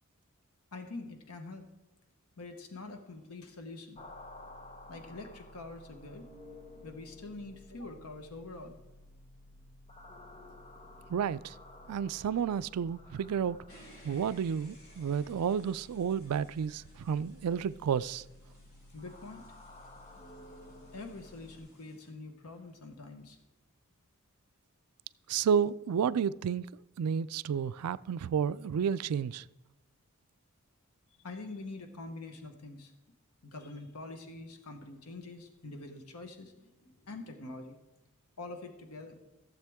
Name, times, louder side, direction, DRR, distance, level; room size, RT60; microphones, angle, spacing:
voice 1, 0.7-1.7 2.4-4.0 4.9-6.3 6.8-8.8 18.9-19.5 20.9-23.4 31.2-32.9 33.4-37.8 38.4-39.4, left 2 dB, 90° left, 1.1 m, -45 dB
Alien Atmosphere, 4.0-21.6, left 1 dB, 30° left, 0.7 m, -53 dB
voice 2, 11.1-11.6 11.9-13.6 14.0-18.2 25.3-26.7 27.0-29.4, right 7 dB, 90° right, 0.4 m, -31 dB
sound 1, 13.7-22.1, left 1 dB, 65° left, 3.2 m, -60 dB
15.0 x 7.4 x 3.5 m
head